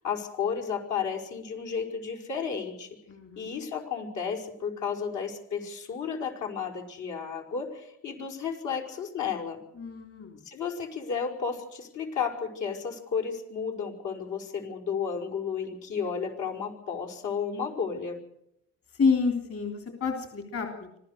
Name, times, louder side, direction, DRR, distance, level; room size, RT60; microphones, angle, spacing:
voice 1, 0.0-3.0 3.4-9.6 10.5-18.2, left 6 dB, 75° left, 1 dB, 5.3 m, -33 dB
voice 2, 3.1-3.6 9.8-10.4 18.9-21.0, left 5 dB, 50° left, 4 dB, 3.5 m, -29 dB
25.5 x 15.5 x 6.7 m, 0.78 s
cardioid pair, 90°, 30 cm